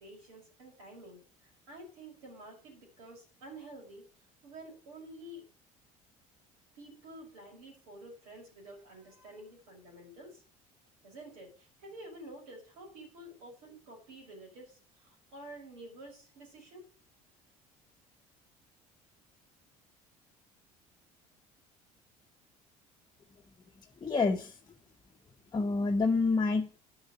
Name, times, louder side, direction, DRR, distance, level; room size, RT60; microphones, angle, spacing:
voice 1, 0.0-4.0 4.4-5.4 6.7-10.4 11.0-16.8, right 1 dB, 70° right, 0 dB, 5.8 m, -50 dB
voice 2, 24.0-24.5 25.5-26.8, left 3 dB, 25° left, 2 dB, 1.1 m, -28 dB
9.8 x 6.3 x 7.5 m, 0.40 s
hypercardioid pair, 60°, 19 cm